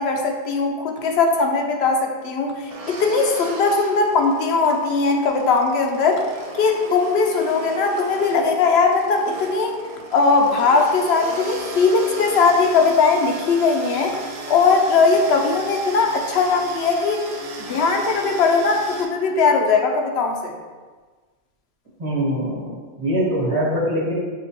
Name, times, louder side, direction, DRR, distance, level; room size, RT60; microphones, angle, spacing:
voice 1, 0.0-6.2 6.6-9.8 10.1-14.2 14.5-17.2 17.6-20.5, left 4 dB, 75° left, 2 dB, 0.8 m, -19 dB
sound 1, 2.7-19.0, right 2 dB, 60° right, 0.3 m, -36 dB
voice 2, 22.0-24.1, equal, 30° right, -9 dB, 1.2 m, -23 dB
6.5 x 2.2 x 2.9 m, 1.4 s
omnidirectional pair, 1.1 m